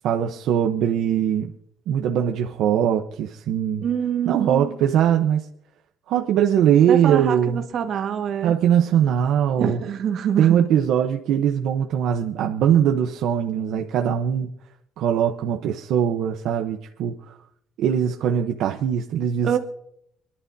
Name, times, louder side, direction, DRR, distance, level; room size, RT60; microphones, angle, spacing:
voice 1, 0.0-1.5 1.9-3.9 4.3-5.4 6.1-7.6 8.4-9.8 10.4-14.5 15.0-17.3 17.8-19.6, right 9 dB, 75° right, 0.9 m, -21 dB
voice 2, 3.8-4.7 6.9-8.6 9.6-10.7 19.4-19.6, right 8 dB, 55° right, 1.6 m, -25 dB
28.5 x 11.0 x 2.7 m
cardioid pair, 130°, 0 cm